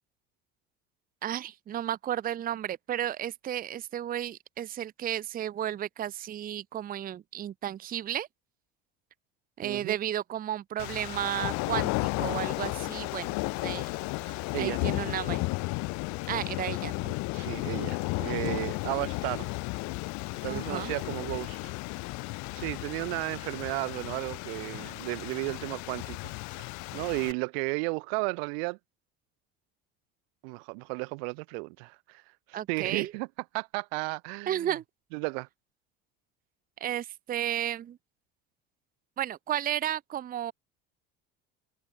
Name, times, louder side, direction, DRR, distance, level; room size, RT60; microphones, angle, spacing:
voice 1, 1.2-8.3 9.6-11.9 12.2-13.4 13.6-13.9 14.6-15.4 16.3-17.1 20.5-20.9 32.5-33.1 34.5-34.8 36.8-38.0 39.2-40.5, right 11 dB, 30° right, 0.7 m, -33 dB
voice 2, 9.6-9.9 14.2-14.8 17.3-19.5 20.4-21.7 22.5-26.7 26.9-28.8 30.4-32.2 32.7-33.3 33.5-34.7 35.1-35.5, right 36 dB, 85° right, 1.7 m, -34 dB
sound 1, 10.8-27.3, left 26 dB, 70° left, 1.3 m, -34 dB
open air
cardioid pair, 130°, 30 cm